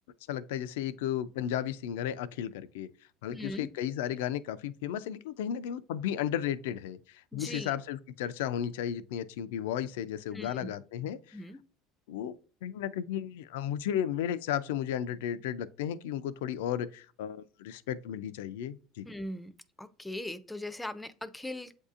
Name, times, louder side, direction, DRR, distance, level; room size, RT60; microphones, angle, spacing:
voice 1, 0.3-2.9 3.2-11.4 12.1-12.4 12.6-19.1, left 10 dB, 85° left, 0.3 m, -34 dB
voice 2, 3.3-3.7 7.3-7.7 10.3-10.7 11.3-11.6 19.0-19.5 19.8-21.8, left 1 dB, 10° left, 0.4 m, -40 dB
7.9 x 2.7 x 2.4 m
supercardioid pair, 110°, 0 cm